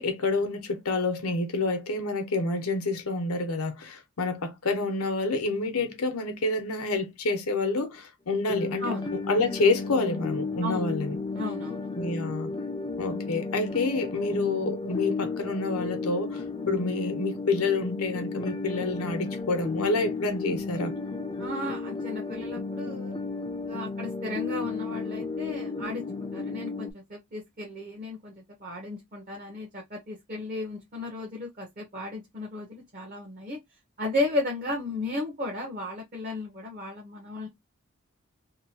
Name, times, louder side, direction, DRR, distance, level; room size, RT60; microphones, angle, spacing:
voice 1, 0.0-11.2 12.0-12.5 13.0-20.9, left 3 dB, 85° left, 0.8 m, -28 dB
sound 1, 8.5-26.9, left 3 dB, 20° left, 0.4 m, -33 dB
voice 2, 11.3-11.9 21.4-23.1 23.7-33.6 34.0-37.5, left 2 dB, 40° right, 0.7 m, -34 dB
2.9 x 2.2 x 2.7 m
head